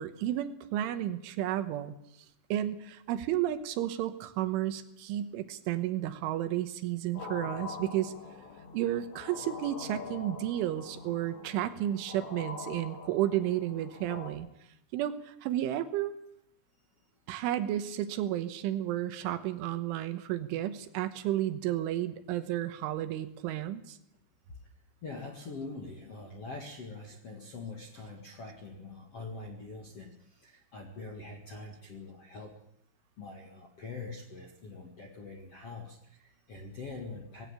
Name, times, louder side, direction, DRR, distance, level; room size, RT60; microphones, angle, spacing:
voice 1, 0.0-1.9 2.5-8.1 8.7-14.5 14.9-16.1 17.3-24.0, right 12 dB, 80° right, 10 dB, 3.5 m, -32 dB
sound 1, 7.1-14.3, left 5 dB, 75° left, 5.2 m, -44 dB
voice 2, 25.0-32.6 33.2-37.5, left 3 dB, 55° left, 2 dB, 1.7 m, -44 dB
19.5 x 16.5 x 8.9 m, 0.74 s
omnidirectional pair, 5.9 m